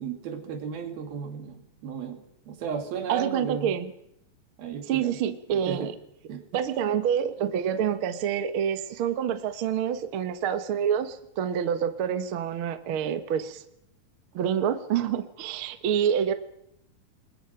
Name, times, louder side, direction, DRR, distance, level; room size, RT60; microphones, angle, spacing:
voice 1, 0.0-3.8 4.6-5.2 5.7-5.9 6.3-6.5, right 6 dB, 80° right, 6 dB, 4.1 m, -35 dB
voice 2, 3.1-3.9 4.9-5.9 6.5-13.6 14.3-16.3, right 8 dB, 65° right, 9 dB, 1.3 m, -27 dB
27.5 x 21.5 x 5.8 m, 0.77 s
omnidirectional pair, 4.2 m